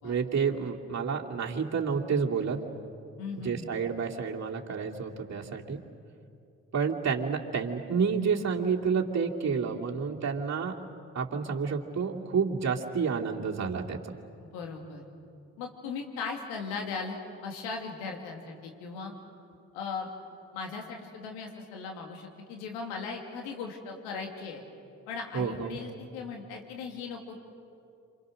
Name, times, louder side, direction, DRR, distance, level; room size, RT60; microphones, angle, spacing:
voice 1, 0.0-2.6 3.4-5.8 6.7-10.7 11.1-14.2 25.3-25.8, right 6 dB, 45° right, -1 dB, 2.7 m, -29 dB
voice 2, 3.2-3.8 14.4-15.0 15.6-17.2 17.4-19.1 19.7-20.1 20.5-24.6 25.1-27.4, left 5 dB, 85° left, 2 dB, 2.8 m, -38 dB
27.5 x 27.5 x 6.5 m, 2.5 s
hypercardioid pair, 40°, 38 cm